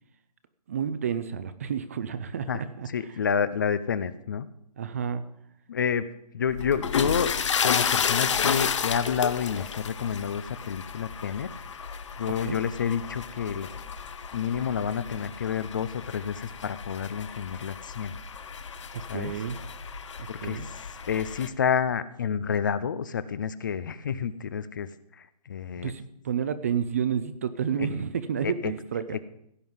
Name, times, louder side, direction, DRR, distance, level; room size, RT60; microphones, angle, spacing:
voice 1, 0.7-2.9 4.8-5.2 12.4-12.6 18.9-19.6 20.4-20.7 25.8-29.2, right 7 dB, 25° right, 13 dB, 0.5 m, -30 dB
voice 2, 2.9-4.5 5.7-6.1 6.3-7.3 7.6-11.5 12.2-13.7 14.3-18.1 19.1-19.3 20.3-20.6 21.1-24.9 25.2-25.9 27.8-27.9 28.4-28.7, left 7 dB, 30° left, 15 dB, 0.5 m, -29 dB
sound 1, 6.5-21.5, left 7 dB, 50° left, 1.0 m, -32 dB
sound 2, 7.0-21.4, left 4 dB, 90° left, 3.1 m, -54 dB
16.0 x 5.4 x 9.5 m, 0.73 s
hypercardioid pair, 170°, 20 cm